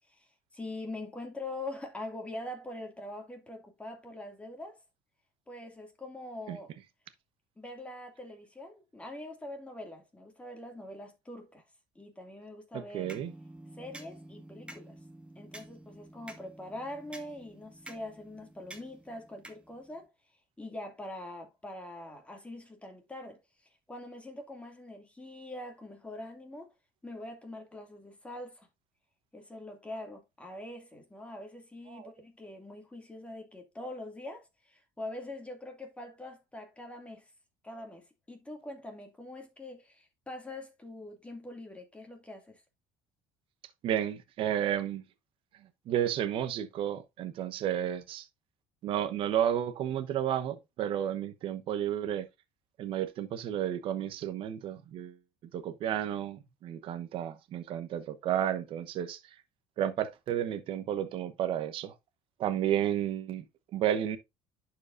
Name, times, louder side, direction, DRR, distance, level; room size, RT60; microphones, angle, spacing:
voice 1, 0.1-4.8 5.5-6.7 7.6-11.6 12.0-13.1 13.8-15.0 15.4-20.1 20.6-23.4 23.9-26.7 27.0-28.7 29.3-37.3 37.6-42.6, left 1 dB, 10° left, 2.4 m, -43 dB
voice 2, 12.7-13.3 31.9-32.1 43.8-45.0 45.9-48.3 48.8-52.3 52.8-55.2 55.5-59.2 59.8-61.9 62.4-63.4 63.7-64.2, right 10 dB, 55° right, 1.0 m, -32 dB
sound 1, 13.0-20.0, right 1 dB, 10° right, 1.6 m, -50 dB
11.0 x 4.9 x 2.6 m
supercardioid pair, 95°, 11 cm